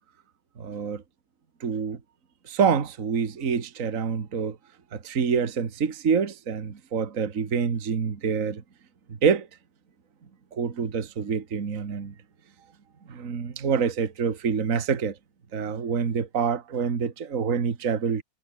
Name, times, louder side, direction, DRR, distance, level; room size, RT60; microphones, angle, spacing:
voice 1, 0.6-1.0 1.6-2.0 2.5-4.6 4.9-8.6 9.2-9.5 10.5-12.1 13.1-15.1 15.5-18.2, right 6 dB, 40° right, 2.1 m, -26 dB
omnidirectional pair, 2.3 m